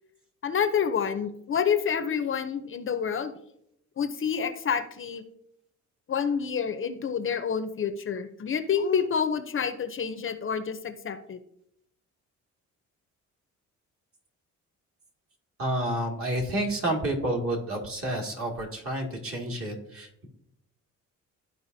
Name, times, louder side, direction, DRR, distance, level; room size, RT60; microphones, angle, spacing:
voice 1, 0.4-3.4 4.0-5.2 6.1-11.4, left 7 dB, 45° left, 10 dB, 0.7 m, -28 dB
voice 2, 15.6-20.3, right 1 dB, 45° right, 1 dB, 2.2 m, -30 dB
13.0 x 4.7 x 2.7 m, 0.75 s
cardioid pair, 90°, 30 cm